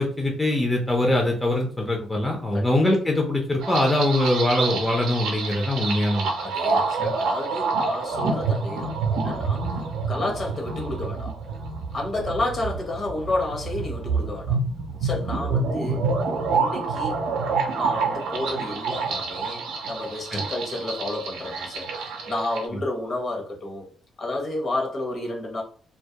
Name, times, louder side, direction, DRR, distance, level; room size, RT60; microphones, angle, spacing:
voice 1, 0.0-6.3 6.7-7.1 20.3-20.4, left 1 dB, 15° left, 0.5 m, -23 dB
sound 1, 3.6-22.7, right 4 dB, 85° right, 0.4 m, -27 dB
voice 2, 6.4-9.7 10.1-11.3 11.9-14.6 15.0-16.1 16.5-17.3 17.8-21.9 22.3-23.9 24.2-25.6, left 2 dB, 45° left, 0.8 m, -31 dB
2.2 x 2.0 x 2.7 m
cardioid pair, 90°, 0 cm